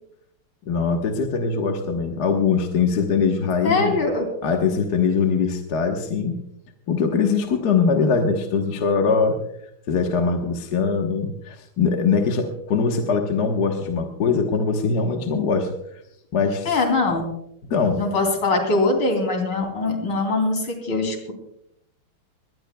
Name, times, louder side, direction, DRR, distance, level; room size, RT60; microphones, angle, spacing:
voice 1, 0.7-4.0 4.4-6.4 6.9-9.4 9.9-15.7 16.3-16.7 17.7-18.0, left 5 dB, 50° left, 3 dB, 1.7 m, -22 dB
voice 2, 3.6-4.3 16.7-17.3 18.0-21.3, left 3 dB, 70° left, 3 dB, 3.9 m, -22 dB
22.0 x 19.0 x 2.3 m, 0.77 s
omnidirectional pair, 2.3 m